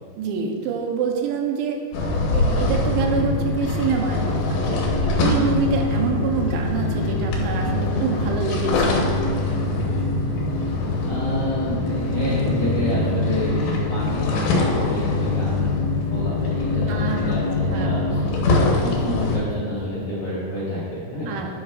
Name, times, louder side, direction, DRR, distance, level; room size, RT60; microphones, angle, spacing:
voice 1, 0.2-1.8 2.3-4.8 5.2-9.0 16.9-17.2 17.7-18.0 21.3-21.5, right 5 dB, 85° right, 2 dB, 3.1 m, -26 dB
sound 1, 1.9-19.4, left 2 dB, 80° left, 3.3 m, -23 dB
voice 2, 11.0-18.3 18.7-21.4, left 1 dB, 40° left, -8 dB, 2.5 m, -29 dB
11.5 x 9.7 x 2.4 m, 2.1 s
omnidirectional pair, 5.2 m